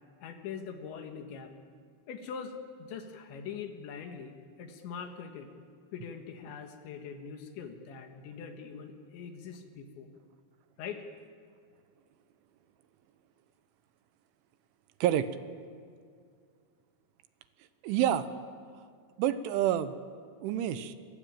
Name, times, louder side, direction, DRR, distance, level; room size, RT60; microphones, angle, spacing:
voice 1, 0.2-1.5 2.1-5.5 5.9-10.1 10.8-11.0, left 6 dB, 70° left, 5 dB, 3.8 m, -42 dB
voice 2, 17.8-18.3 19.2-19.9 20.4-21.0, right 11 dB, 80° right, 11 dB, 3.2 m, -28 dB
24.5 x 23.5 x 8.9 m, 2.2 s
omnidirectional pair, 5.7 m